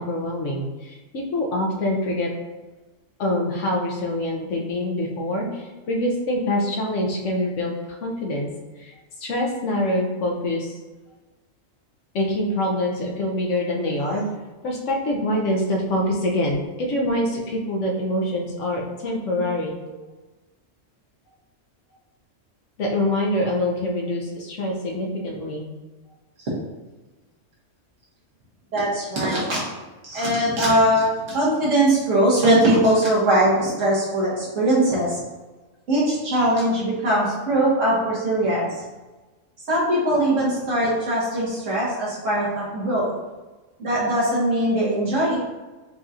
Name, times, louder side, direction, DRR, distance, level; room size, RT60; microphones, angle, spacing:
voice 1, 0.0-2.3 3.2-7.7 8.0-8.5 8.8-8.9 9.2-10.8 12.1-14.3 14.6-19.7 22.8-25.7, left 1 dB, 75° left, 0 dB, 1.0 m, -25 dB
voice 2, 28.7-29.6 30.0-35.2 35.9-38.7 39.7-43.1 43.8-45.4, right 1 dB, 75° right, -7 dB, 1.6 m, -21 dB
4.6 x 2.7 x 2.4 m, 1.2 s
omnidirectional pair, 1.3 m